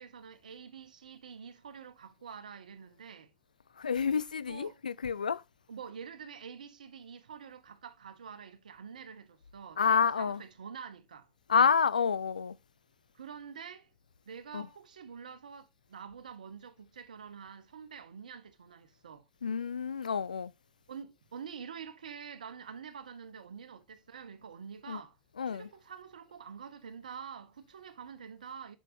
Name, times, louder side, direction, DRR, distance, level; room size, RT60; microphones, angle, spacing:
voice 1, 0.0-3.3 4.5-4.8 5.7-11.3 13.1-13.9 14.3-19.2 20.9-25.1 25.5-28.8, right 7 dB, 80° right, 1.0 m, -47 dB
voice 2, 3.8-5.4 9.8-10.4 11.5-12.6 14.5-14.7 19.4-20.5 24.9-25.0 25.4-25.7, left 6 dB, 85° left, 0.4 m, -28 dB
7.7 x 6.2 x 2.7 m
figure-of-eight pair, 75°, 4 cm